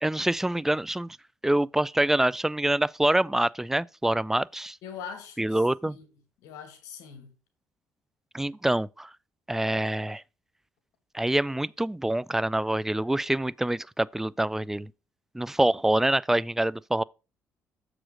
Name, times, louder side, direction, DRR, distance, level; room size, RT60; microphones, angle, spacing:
voice 1, 0.0-1.1 1.4-4.8 5.4-6.0 8.3-9.1 9.5-10.2 11.1-14.9 15.3-17.0, right 1 dB, 5° right, 0.3 m, -26 dB
voice 2, 4.8-6.1 6.4-7.3, left 7 dB, 85° left, 2.0 m, -42 dB
7.3 x 5.0 x 4.9 m
supercardioid pair, 75°, 5 cm